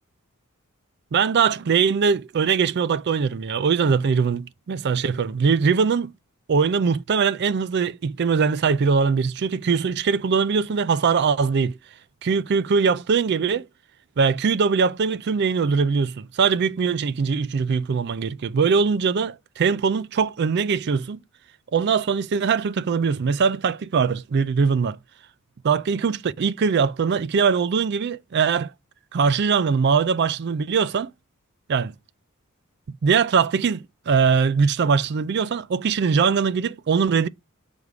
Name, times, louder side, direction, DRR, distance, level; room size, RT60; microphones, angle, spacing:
voice 1, 1.1-6.1 6.5-11.8 12.2-13.7 14.2-21.2 21.7-25.0 25.6-28.7 29.1-31.1 31.7-31.9 33.0-37.3, right 5 dB, 50° right, 0.4 m, -21 dB
8.0 x 3.5 x 4.8 m
head